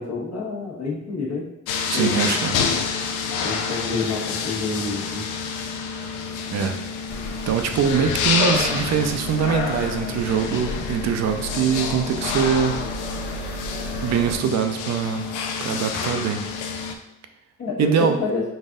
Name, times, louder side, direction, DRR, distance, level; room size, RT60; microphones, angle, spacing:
voice 1, 0.0-1.4 1.9-2.1 3.4-5.3 17.6-18.4, left 3 dB, 60° left, -3 dB, 1.4 m, -28 dB
sound 1, 1.7-16.9, left 6 dB, 90° left, 0.5 m, -28 dB
voice 2, 1.9-2.5 6.5-6.8 7.5-12.8 14.0-15.3 15.6-16.5 17.8-18.2, right 7 dB, 60° right, 6 dB, 0.5 m, -23 dB
sound 2, 7.1-14.4, equal, 35° left, 1.1 m, -35 dB
4.0 x 2.6 x 3.7 m, 0.98 s
cardioid pair, 90°, 30 cm